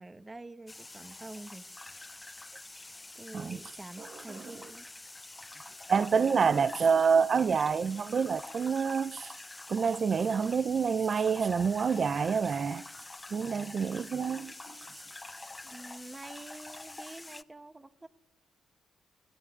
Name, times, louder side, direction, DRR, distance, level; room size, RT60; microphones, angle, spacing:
voice 1, 0.0-1.6 3.1-4.9 15.6-18.1, right 2 dB, 20° right, 1.4 m, -47 dB
sound 1, 0.7-17.4, left 2 dB, 20° left, 0.8 m, -46 dB
voice 2, 5.9-9.3 9.7-12.8 13.3-14.7, right 6 dB, 50° right, 0.8 m, -27 dB
24.0 x 12.0 x 9.6 m
supercardioid pair, 70°, 0 cm